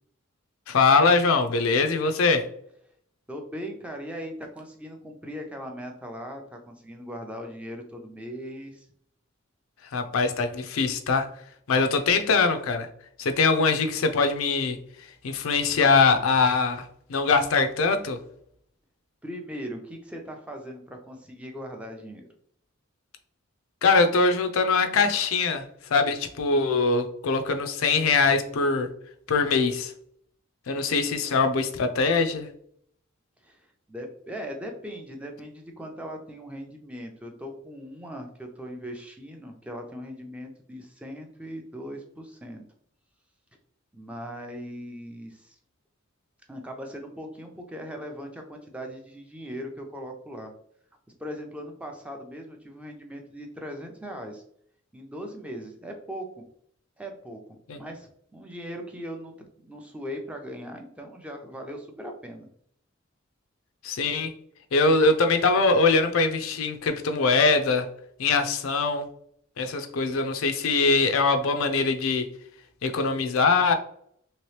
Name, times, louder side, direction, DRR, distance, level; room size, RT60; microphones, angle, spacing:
voice 1, 0.7-2.5 9.9-11.3 11.7-12.9 13.2-14.8 15.2-18.2 23.8-25.6 25.9-28.9 29.3-29.9 30.7-32.5 57.7-57.8 63.8-64.3 64.7-67.9 68.2-69.1 69.6-72.3 72.8-73.7, left 4 dB, 80° left, 8 dB, 0.4 m, -22 dB
voice 2, 3.3-8.9 19.2-22.3 33.4-42.6 43.9-45.6 46.5-50.5 51.2-54.4 54.9-56.4 57.0-57.4 57.7-62.5, equal, 5° right, 2 dB, 0.4 m, -39 dB
3.1 x 2.9 x 3.1 m, 0.67 s
head